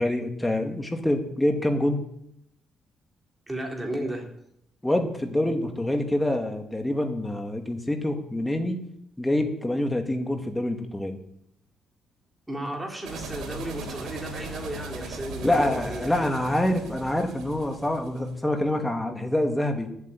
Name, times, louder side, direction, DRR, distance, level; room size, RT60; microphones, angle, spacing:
voice 1, 0.0-2.0 4.8-8.8 9.2-11.2 15.4-19.9, left 1 dB, 10° left, 4 dB, 2.3 m, -26 dB
voice 2, 3.5-4.3 12.5-16.3, right 1 dB, 10° right, 0 dB, 4.0 m, -34 dB
sound 1, 13.0-18.3, right 2 dB, 75° right, 3.6 m, -39 dB
11.0 x 8.4 x 9.2 m, 0.75 s
cardioid pair, 90°, 0 cm